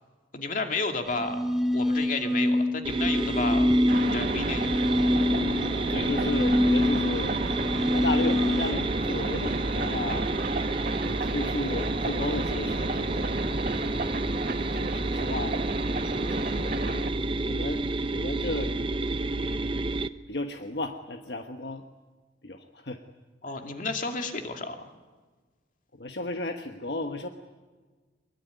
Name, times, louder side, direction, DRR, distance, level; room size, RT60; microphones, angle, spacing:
voice 1, 0.3-1.4 1.7-3.7 3.9-4.7 23.4-24.8, left 3 dB, 45° left, 4 dB, 2.5 m, -32 dB
sound 1, 1.1-8.7, left 1 dB, ahead, 1.9 m, -26 dB
sound 2, 2.8-20.1, right 2 dB, 30° right, 0.7 m, -30 dB
sound 3, 3.9-17.1, right 2 dB, 50° right, 1.6 m, -33 dB
voice 2, 5.7-7.4 7.9-10.3 11.1-13.3 13.9-14.1 14.5-17.8 18.1-18.7 19.4-19.6 20.3-21.8 22.4-23.0 25.9-27.3, left 2 dB, 65° left, 5 dB, 1.3 m, -34 dB
23.0 x 22.0 x 9.5 m, 1.4 s
head